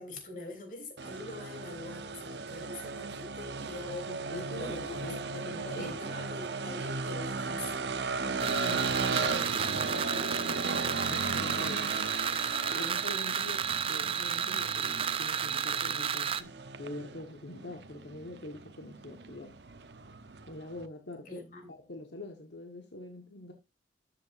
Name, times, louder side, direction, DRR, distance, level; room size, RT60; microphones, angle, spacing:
voice 1, 0.0-7.8 21.2-21.7, left 2 dB, 45° left, 3.3 m, -44 dB
sound 1, 1.0-20.9, right 4 dB, 75° right, 0.9 m, -36 dB
voice 2, 4.1-6.0 8.2-12.1 12.7-19.5 20.5-23.5, left 1 dB, 80° left, 1.5 m, -44 dB
sound 2, 8.4-16.4, right 7 dB, 30° right, 0.5 m, -32 dB
13.0 x 7.6 x 2.6 m
head